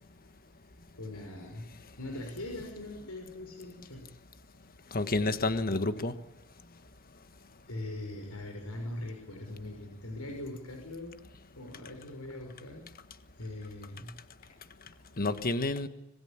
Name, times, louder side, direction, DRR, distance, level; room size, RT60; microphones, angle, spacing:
voice 1, 0.9-1.7 2.0-4.1 7.7-11.2 11.5-12.9 13.4-14.1 14.4-14.5, left 1 dB, 90° left, 3 dB, 5.7 m, -41 dB
voice 2, 4.9-6.1 15.2-15.9, left 2 dB, 40° left, 10 dB, 1.5 m, -29 dB
26.0 x 20.5 x 8.9 m, 0.92 s
head